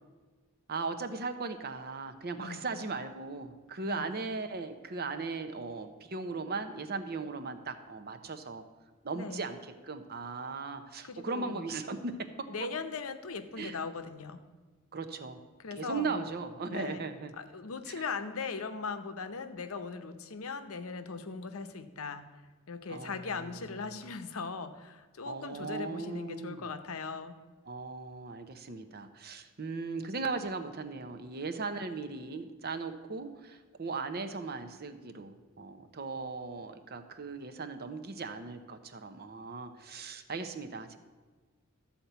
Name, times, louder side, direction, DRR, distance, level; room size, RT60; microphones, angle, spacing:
voice 1, 0.7-8.6 9.0-9.6 9.8-12.5 13.6-13.8 14.9-15.4 15.8-17.3 17.9-18.0 22.9-23.6 25.3-26.7 27.7-41.0, right 4 dB, 45° right, 9 dB, 0.8 m, -38 dB
voice 2, 11.0-11.7 12.5-14.4 15.6-16.2 16.7-17.0 17.4-22.2 22.7-27.4, left 4 dB, 75° left, 9 dB, 0.8 m, -39 dB
13.0 x 4.4 x 8.1 m, 1.3 s
head